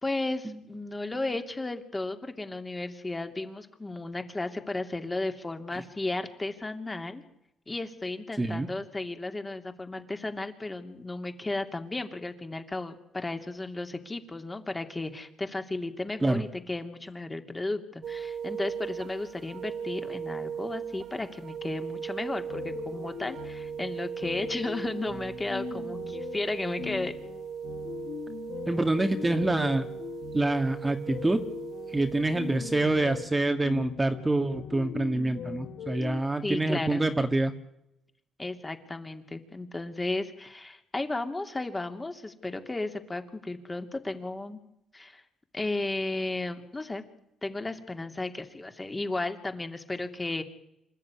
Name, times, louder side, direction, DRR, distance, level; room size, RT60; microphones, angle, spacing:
voice 1, 0.0-7.2 7.7-27.1 36.4-37.0 38.4-44.6 44.9-45.2 45.5-47.0 47.4-50.4, left 2 dB, 20° left, 6 dB, 2.8 m, -34 dB
voice 2, 8.4-8.7 16.2-16.4 28.7-29.9 30.3-31.4 31.9-37.5, right 2 dB, 15° right, 7 dB, 1.9 m, -26 dB
sound 1, 18.0-33.3, right 7 dB, 65° right, 1.1 m, -38 dB
sound 2, 22.5-36.2, left 9 dB, 70° left, 1.4 m, -41 dB
26.5 x 14.0 x 9.8 m, 0.82 s
cardioid pair, 90°, 0 cm